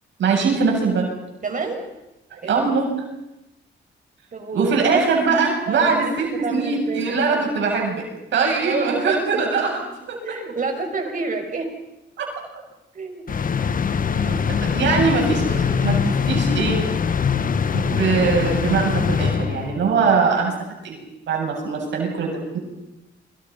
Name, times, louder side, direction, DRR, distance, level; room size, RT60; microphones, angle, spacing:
voice 1, 0.2-1.1 2.3-3.0 4.5-9.8 10.1-10.4 12.2-12.3 14.3-16.9 17.7-21.0 21.3-22.6, right 4 dB, 70° right, 0 dB, 7.7 m, -22 dB
voice 2, 1.4-1.9 2.4-2.6 4.3-5.0 5.7-6.1 6.4-7.4 8.6-9.2 10.2-11.7 12.9-13.2 14.0-14.6, right 4 dB, 45° right, 4 dB, 6.6 m, -29 dB
sound 1, 13.3-20.0, left 6 dB, 45° left, 1.4 m, -22 dB
30.0 x 25.0 x 5.7 m, 0.95 s
cardioid pair, 90°, 19 cm